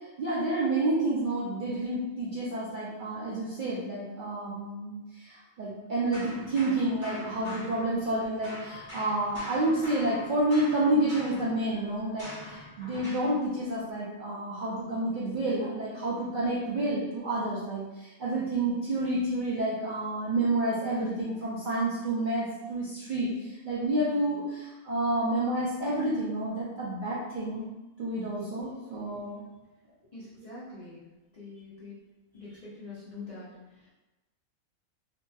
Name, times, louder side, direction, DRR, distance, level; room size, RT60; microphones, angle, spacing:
voice 1, 0.2-27.7 28.0-29.4, right 1 dB, 90° right, -8 dB, 0.4 m, -29 dB
sound 1, 6.1-8.2 8.4-13.3, left 1 dB, 10° right, 1.1 m, -44 dB
voice 2, 30.1-31.0 31.3-32.0 32.3-33.9, left 3 dB, 65° left, -10 dB, 0.4 m, -45 dB
2.8 x 2.6 x 2.3 m, 1.1 s
omnidirectional pair, 1.5 m